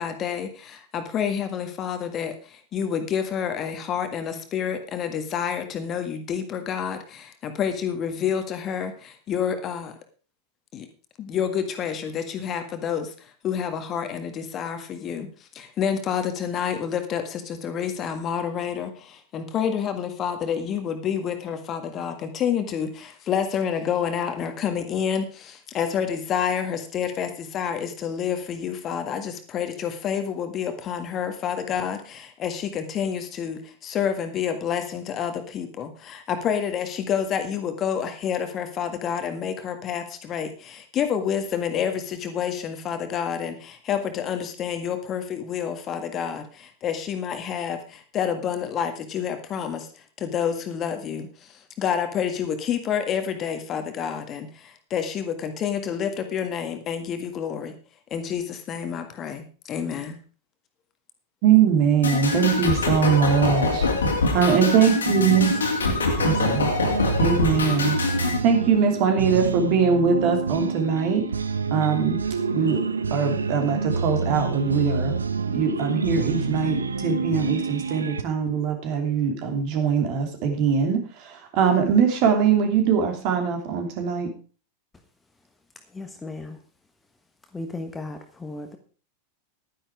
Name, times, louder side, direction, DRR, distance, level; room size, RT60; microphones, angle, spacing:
voice 1, 0.0-9.9 10.7-10.9 11.2-13.1 13.4-15.3 15.5-49.9 50.2-57.7 58.1-60.2, left 8 dB, 30° left, 7 dB, 1.7 m, -28 dB
voice 2, 61.4-63.9 64.3-65.5 66.2-66.7 67.2-68.0 68.4-71.3 71.7-72.2 72.5-72.8 73.1-75.1 75.5-84.3, right 7 dB, 45° right, 4 dB, 2.9 m, -22 dB
sound 1, 62.0-68.4, left 3 dB, 70° left, 2.5 m, -24 dB
sound 2, 65.1-78.2, right 4 dB, 75° right, 0.8 m, -28 dB
voice 3, 85.9-86.6 87.5-88.8, left 2 dB, 10° left, 6 dB, 1.3 m, -35 dB
11.5 x 10.5 x 4.8 m, 0.38 s
figure-of-eight pair, 90°, 0 cm